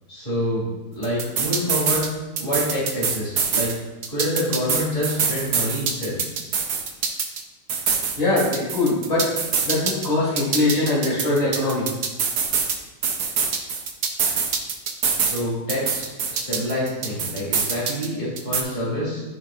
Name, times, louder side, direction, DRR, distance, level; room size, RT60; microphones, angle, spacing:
voice 1, 0.1-0.6 0.9-2.1 2.4-3.7 4.1-6.2 15.2-19.2, equal, 30° left, -7 dB, 3.0 m, -27 dB
sound 1, 1.0-2.1 2.4-3.7 4.0-7.4 7.7-10.1 10.4-12.8 13.0-15.4 15.7-18.1 18.4-18.6, right 6 dB, 75° right, 1.4 m, -24 dB
voice 2, 8.2-9.3 9.6-11.9, left 2 dB, 70° left, -7 dB, 2.8 m, -22 dB
14.0 x 4.7 x 2.6 m, 1.1 s
omnidirectional pair, 1.7 m